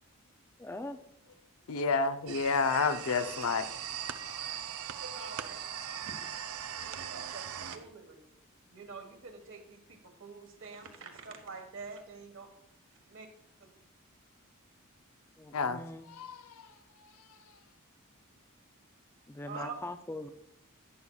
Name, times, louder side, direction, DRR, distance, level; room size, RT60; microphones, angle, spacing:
voice 1, 0.6-1.0 15.4-16.1 19.3-20.3, left 2 dB, 10° left, 8 dB, 0.4 m, -41 dB
voice 2, 1.7-3.7 4.2-4.3 15.5-15.8 16.1-16.4, left 4 dB, 85° left, 10 dB, 0.7 m, -29 dB
sound 1, 2.3-7.8, right 9 dB, 85° right, 0.5 m, -40 dB
voice 3, 4.9-8.2 8.7-12.5 13.1-13.3 19.4-19.8, right 4 dB, 60° right, 4 dB, 1.5 m, -47 dB
11.0 x 9.5 x 2.3 m, 0.77 s
head